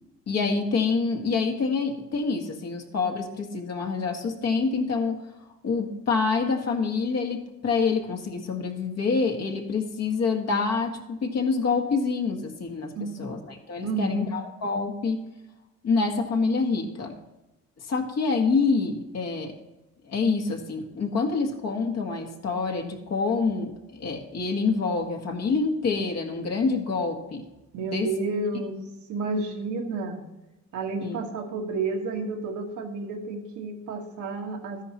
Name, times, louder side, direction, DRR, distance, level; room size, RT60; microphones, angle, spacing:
voice 1, 0.3-5.2 5.6-12.9 13.2-15.2 15.8-17.1 17.9-19.6 20.1-27.5 27.8-28.1 31.0-31.2, left 4 dB, 55° left, 3 dB, 1.8 m, -26 dB
voice 2, 13.8-14.3 27.7-28.8 29.1-30.2 30.7-34.8, right 3 dB, 80° right, 2 dB, 1.6 m, -30 dB
13.0 x 10.5 x 3.0 m, 1.0 s
cardioid pair, 90°, 30 cm